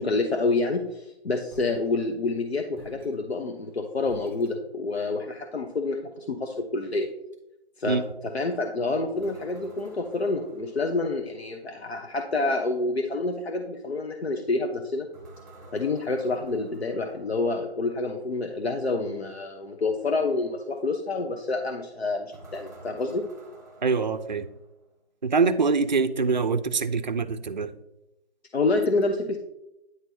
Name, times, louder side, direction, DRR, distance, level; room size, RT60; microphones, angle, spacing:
voice 1, 0.0-7.1 7.8-15.1 15.7-23.2 28.5-29.4, left 3 dB, 75° left, 3 dB, 0.9 m, -28 dB
sound 1, 1.5-2.4 2.8-5.1, equal, 25° left, 1.6 m, -51 dB
sound 2, 9.2-11.5 15.1-17.6 22.3-24.9, right 2 dB, 15° right, 0.9 m, -51 dB
voice 2, 23.8-24.5 25.2-27.7, right 4 dB, 45° right, 11 dB, 0.4 m, -24 dB
9.4 x 4.5 x 2.7 m, 0.86 s
figure-of-eight pair, 160°, 32 cm